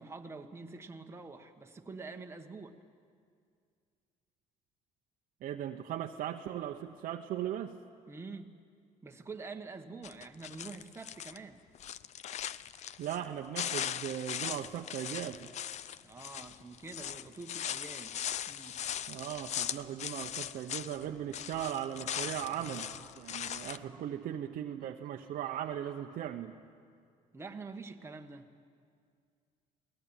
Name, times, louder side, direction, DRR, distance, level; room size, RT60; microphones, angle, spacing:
voice 1, 0.0-2.8 8.1-8.6 9.0-11.6 16.0-18.2 18.5-18.8 27.3-28.5, right 4 dB, 15° right, 4 dB, 1.4 m, -46 dB
voice 2, 5.4-7.7 13.0-15.5 19.1-22.9 23.2-26.5, right 10 dB, 65° right, 3 dB, 0.9 m, -38 dB
sound 1, 10.0-11.4 11.7-13.3 13.5-21.0 21.3-23.8, left 10 dB, 50° left, 0.6 m, -39 dB
sound 2, 21.0-21.3 21.9-26.3, right 2 dB, ahead, 3.8 m, -59 dB
22.0 x 18.5 x 9.0 m, 2.2 s
cardioid pair, 115°, 15 cm